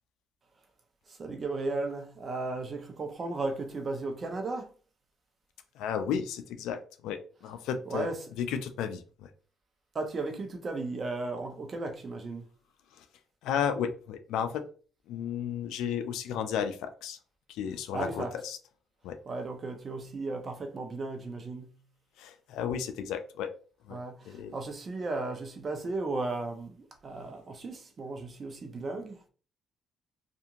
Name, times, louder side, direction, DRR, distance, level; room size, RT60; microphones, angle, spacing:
voice 1, 1.1-4.7 7.8-8.3 9.9-12.4 17.9-18.3 19.3-21.8 23.9-29.3, right 3 dB, 40° right, 0.7 m, -35 dB
voice 2, 5.8-8.1 8.4-9.3 13.0-13.1 13.4-14.6 15.1-17.2 17.5-18.6 19.0-19.2 22.2-23.5 23.9-24.0 24.3-24.6, left 8 dB, 90° left, 0.4 m, -33 dB
2.9 x 2.5 x 2.4 m
cardioid pair, 85°, 0 cm